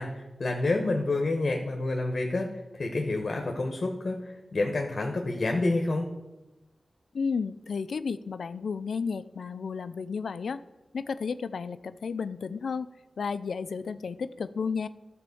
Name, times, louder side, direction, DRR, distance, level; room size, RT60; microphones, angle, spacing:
voice 1, 0.0-2.5 2.7-6.1, left 2 dB, 55° left, 3 dB, 1.1 m, -28 dB
voice 2, 7.1-10.6 10.9-12.9 13.2-14.9, left 5 dB, 85° left, 13 dB, 0.3 m, -32 dB
12.0 x 4.3 x 7.0 m, 1.0 s
cardioid pair, 65°, 0 cm